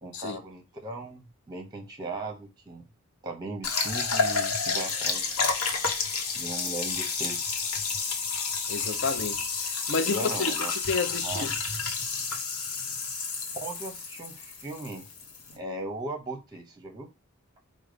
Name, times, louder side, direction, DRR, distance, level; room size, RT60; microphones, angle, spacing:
voice 1, 0.0-2.8 3.2-5.3 6.3-7.4 10.0-10.7 11.1-11.5 13.6-15.1 15.5-17.1, right 2 dB, 20° right, 0.7 m, -38 dB
sound 1, 3.6-15.5, left 5 dB, 85° left, 1.0 m, -30 dB
voice 2, 8.7-11.6, left 4 dB, 55° left, 0.6 m, -31 dB
5.0 x 2.2 x 4.9 m
head